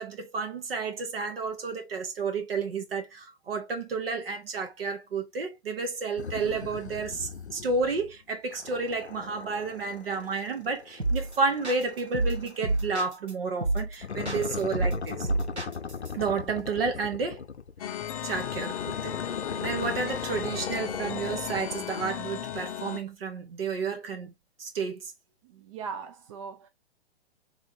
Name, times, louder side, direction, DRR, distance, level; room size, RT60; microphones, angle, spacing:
voice 1, 0.0-15.3 16.1-17.4 17.8-18.0 18.2-19.2 19.6-24.3 24.6-25.1, right 4 dB, 60° right, 1.3 m, -31 dB
sound 1, 6.2-8.1 8.5-13.0 14.0-17.9 18.3-22.1, left 6 dB, 85° left, 0.6 m, -39 dB
sound 2, 11.0-11.3 11.6-13.3 13.6-13.9 14.2-16.1, right 2 dB, 85° right, 1.6 m, -28 dB
sound 3, 17.8-23.0, left 10 dB, 35° left, 0.5 m, -35 dB
voice 2, 25.4-26.7, right 6 dB, 30° right, 0.4 m, -39 dB
3.5 x 3.4 x 2.6 m
figure-of-eight pair, 115°, 32 cm